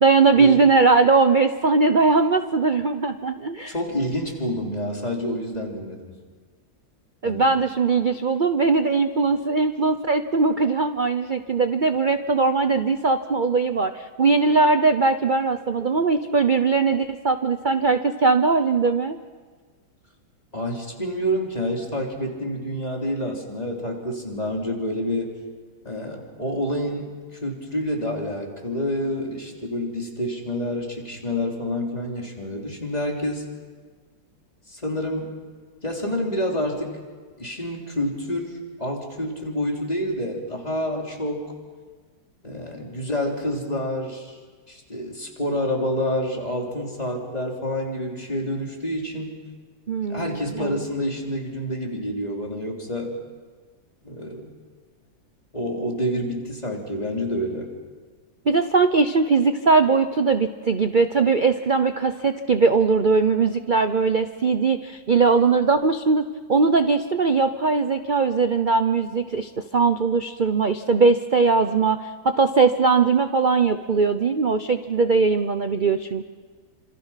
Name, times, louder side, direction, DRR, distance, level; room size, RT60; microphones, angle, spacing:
voice 1, 0.0-3.7 7.2-19.2 49.9-50.9 58.5-66.2 66.5-76.2, right 4 dB, 90° right, 9 dB, 0.4 m, -20 dB
voice 2, 3.7-6.2 7.2-7.5 20.5-25.3 25.8-27.1 27.4-33.4 34.7-35.3 35.8-37.0 37.4-38.5 38.8-41.4 42.4-44.4 44.7-49.4 50.1-53.1 54.0-54.5 55.5-57.7, equal, 20° left, 0 dB, 3.6 m, -28 dB
28.0 x 26.5 x 5.8 m, 1.5 s
omnidirectional pair, 2.1 m